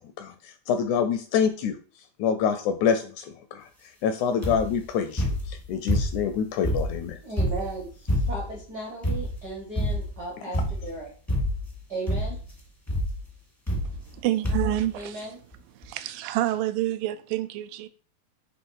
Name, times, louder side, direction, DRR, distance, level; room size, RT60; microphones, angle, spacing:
voice 1, 0.7-1.8 2.2-3.6 4.0-7.2, left 7 dB, 80° left, 1.8 m, -26 dB
sound 1, 4.4-4.8 5.2-6.3 6.6-8.6 9.0-9.5 9.7-10.2 10.5-10.9 11.3-11.8 12.1-12.5 12.9-13.2 13.7-14.2 14.4-14.8 15.5-15.6 15.8-15.9, equal, 20° left, 0.4 m, -27 dB
voice 2, 7.2-7.9 8.3-11.1 11.9-12.4 14.9-15.4, right 2 dB, 65° right, 0.9 m, -36 dB
voice 3, 13.9-15.3 15.8-17.9, right 14 dB, 85° right, 2.2 m, -28 dB
7.3 x 3.3 x 4.6 m
omnidirectional pair, 3.9 m